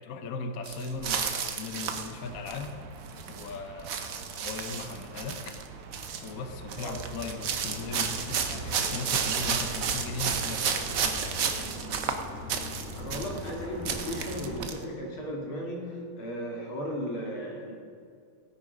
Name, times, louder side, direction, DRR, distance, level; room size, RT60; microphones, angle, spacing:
voice 1, 0.0-2.8 3.3-5.6 6.2-11.7, left 4 dB, 55° left, 6 dB, 1.0 m, -38 dB
sound 1, 0.7-2.7 3.1-3.5 3.8-5.7 5.9-6.3 6.7-13.6 13.8-14.8, right 7 dB, 60° right, 0.9 m, -32 dB
sound 2, 1.8-12.0, right 4 dB, 85° right, 1.9 m, -45 dB
sound 3, 7.3-14.6, left 1 dB, 5° left, 3.5 m, -42 dB
voice 2, 12.9-17.7, equal, 75° left, -2 dB, 3.2 m, -36 dB
17.0 x 8.8 x 5.3 m, 2.3 s
omnidirectional pair, 2.4 m